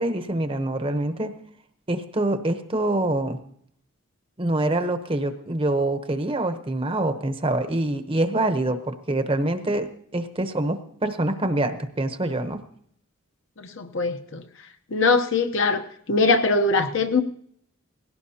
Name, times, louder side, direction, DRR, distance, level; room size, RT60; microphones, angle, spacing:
voice 1, 0.0-1.4 1.9-3.4 4.4-12.6, right 1 dB, 25° right, 9 dB, 0.9 m, -25 dB
voice 2, 13.6-14.4 14.9-15.8 16.1-17.2, left 3 dB, 60° left, 7 dB, 0.9 m, -21 dB
18.5 x 16.5 x 2.8 m, 0.66 s
head